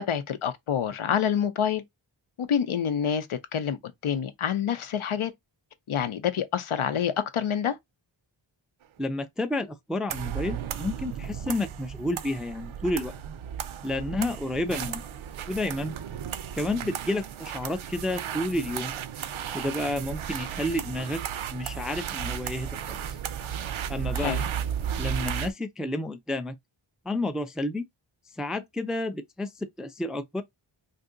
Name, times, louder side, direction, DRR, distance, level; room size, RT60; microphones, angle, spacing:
voice 1, 0.0-1.8 2.4-3.8 4.0-5.3 5.9-7.8 24.1-24.5, left 8 dB, 75° left, 0.7 m, -27 dB
voice 2, 9.0-13.1 13.8-15.0 15.5-16.0 16.5-18.9 19.5-21.2 21.5-23.1 23.9-24.4 25.0-26.6 27.1-27.8 28.4-30.4, left 1 dB, ahead, 0.3 m, -30 dB
sound 1, 10.1-25.5, right 9 dB, 70° right, 0.6 m, -34 dB
2.6 x 2.6 x 3.7 m
wide cardioid pair, 55°, 50 cm